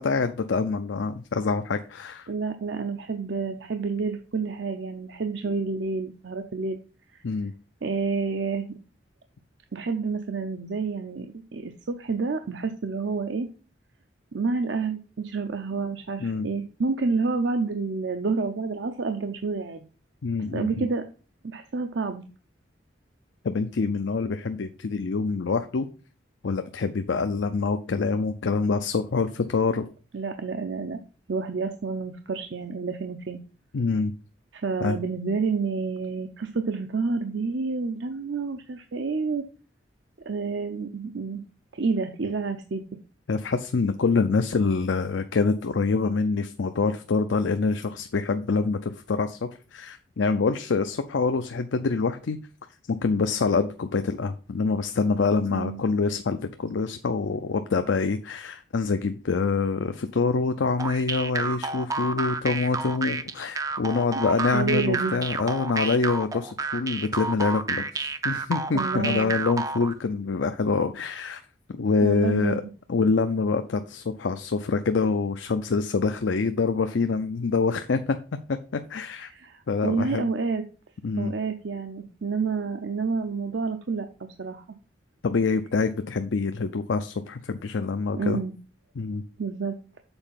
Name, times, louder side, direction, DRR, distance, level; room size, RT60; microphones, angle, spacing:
voice 1, 0.0-2.3 7.2-7.5 16.2-16.5 20.2-20.9 23.4-25.9 26.4-29.9 33.7-34.1 34.8-35.0 43.3-52.4 52.9-71.4 71.8-72.6 72.9-78.2 78.5-79.3 79.7-80.3 81.0-81.3 85.2-88.4 89.0-89.2, left 4 dB, 75° left, 8 dB, 0.5 m, -26 dB
voice 2, 2.3-6.8 7.1-7.2 7.8-8.7 9.7-13.5 14.3-19.9 20.5-21.1 21.4-22.2 30.1-31.0 31.3-33.4 34.5-39.4 40.3-41.4 41.7-42.8 55.5-55.8 64.5-65.2 68.7-69.3 72.0-72.7 79.2-80.6 81.2-84.6 88.1-88.6 89.4-89.8, right 4 dB, 70° right, 7 dB, 0.6 m, -29 dB
sound 1, 60.8-69.9, right 4 dB, 15° right, 0.4 m, -30 dB
7.0 x 4.4 x 5.6 m, 0.36 s
head